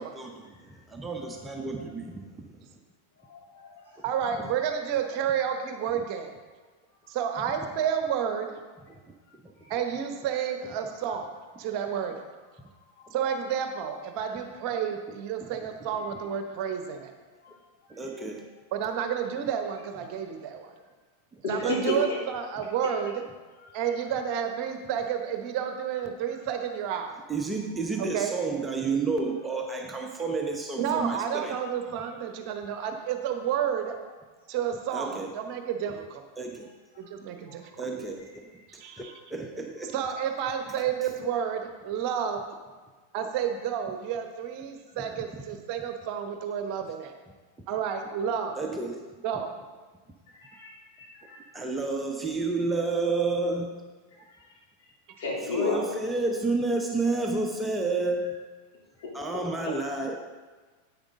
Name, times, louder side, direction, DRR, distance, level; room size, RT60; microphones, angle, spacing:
voice 1, 0.0-2.4 17.9-18.5 21.6-22.0 27.3-31.6 34.9-35.3 36.4-36.7 37.8-38.5 39.0-39.9 45.2-45.3 48.6-49.1 51.5-53.8 55.4-58.3 59.1-60.2, right 3 dB, 10° right, 2 dB, 0.9 m, -30 dB
voice 2, 3.3-3.7 9.6-9.7 21.4-22.2 50.4-51.4 55.2-55.9, left 3 dB, 55° left, -4 dB, 3.0 m, -31 dB
voice 3, 4.0-6.4 7.1-8.5 9.7-11.3 11.6-12.2 13.1-17.1 18.7-20.7 21.5-23.1 23.7-27.1 28.0-28.3 30.8-33.9 34.5-36.2 37.0-37.7 38.7-39.1 39.9-42.4 43.1-47.1 47.7-48.5 49.2-49.5, right 8 dB, 45° right, 6 dB, 1.0 m, -30 dB
10.0 x 8.3 x 3.7 m, 1.3 s
figure-of-eight pair, 90°, 0 cm